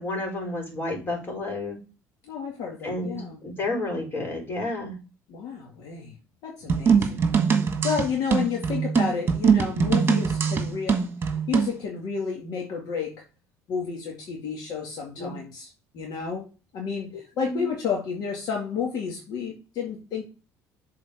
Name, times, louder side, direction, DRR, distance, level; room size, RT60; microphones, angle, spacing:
voice 1, 0.0-1.8 2.8-3.2 3.4-4.9 15.2-15.3 17.4-17.7, left 2 dB, 30° left, 1 dB, 4.6 m, -30 dB
voice 2, 2.2-3.4 5.3-6.1 6.4-7.2 7.8-13.1 13.7-15.7 15.9-16.5 16.7-20.2, left 6 dB, 65° left, 0 dB, 2.0 m, -31 dB
sound 1, 6.7-11.8, right 6 dB, 30° right, 1.6 m, -22 dB
7.0 x 4.3 x 4.9 m, 0.32 s
cardioid pair, 110°, 7 cm